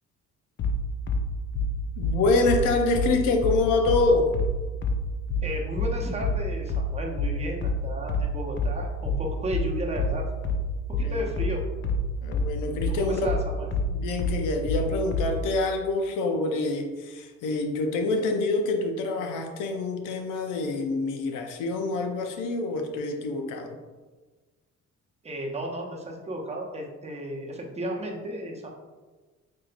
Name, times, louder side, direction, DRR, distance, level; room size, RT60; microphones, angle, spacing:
sound 1, 0.6-15.4, left 2 dB, 40° left, 0.4 m, -27 dB
voice 1, 2.0-4.3 11.0-11.3 12.2-13.2 13.9-23.8, left 3 dB, 85° left, 4 dB, 0.6 m, -26 dB
voice 2, 5.4-10.3 10.9-11.6 13.0-13.7 25.2-28.7, right 1 dB, 20° right, 0 dB, 0.7 m, -33 dB
4.4 x 2.7 x 2.5 m, 1.3 s
cardioid pair, 90°, 30 cm